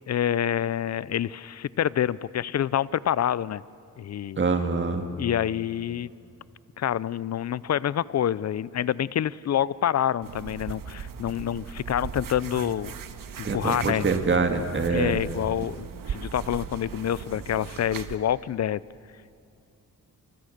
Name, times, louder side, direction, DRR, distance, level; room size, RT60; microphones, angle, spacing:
voice 1, 0.1-3.6 4.0-4.4 5.2-6.1 6.8-12.9 13.4-14.1 14.9-18.8, left 10 dB, 50° left, 20 dB, 0.5 m, -27 dB
voice 2, 4.4-5.1 13.4-15.2, right 4 dB, 35° right, 6 dB, 2.2 m, -25 dB
sound 1, 10.2-18.2, right 7 dB, 70° right, 1.6 m, -38 dB
29.0 x 28.0 x 6.6 m, 2.7 s
wide cardioid pair, 125°, 34 cm